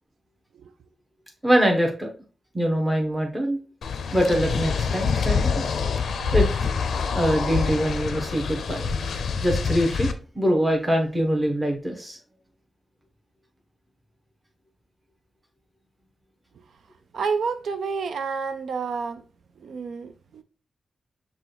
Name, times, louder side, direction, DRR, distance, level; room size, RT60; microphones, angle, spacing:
voice 1, 1.4-2.1 2.5-3.6 4.1-5.6 6.3-6.5 7.1-8.8 9.4-10.1 10.3-12.2, equal, 10° right, 1.1 m, -23 dB
sound 1, 3.8-10.1, left 5 dB, 90° left, 0.4 m, -26 dB
voice 2, 17.1-19.2 19.6-20.4, right 5 dB, 85° right, 0.4 m, -29 dB
5.9 x 2.3 x 3.3 m
cardioid pair, 85°, 0 cm